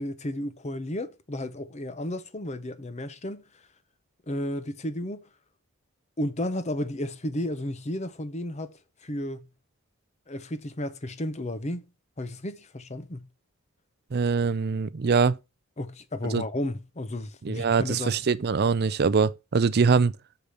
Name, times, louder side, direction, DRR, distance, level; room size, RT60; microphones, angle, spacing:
voice 1, 0.0-3.4 4.3-5.2 6.2-9.5 10.3-11.9 12.2-13.3 15.8-18.2, left 1 dB, 30° left, 0.7 m, -33 dB
voice 2, 14.1-15.4 16.3-16.4 17.4-20.1, right 5 dB, 45° right, 0.4 m, -23 dB
6.7 x 5.0 x 5.7 m
head